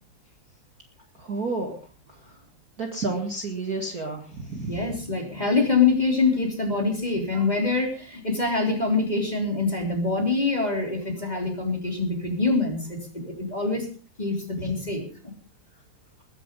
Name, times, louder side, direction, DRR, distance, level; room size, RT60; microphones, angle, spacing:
voice 1, 1.2-1.8 2.8-4.8, right 3 dB, 60° right, 3 dB, 0.9 m, -30 dB
voice 2, 4.7-13.0 13.2-13.8 14.2-14.4 14.6-15.0, left 3 dB, 10° left, 2 dB, 3.1 m, -24 dB
21.0 x 10.0 x 5.3 m, 0.39 s
omnidirectional pair, 5.1 m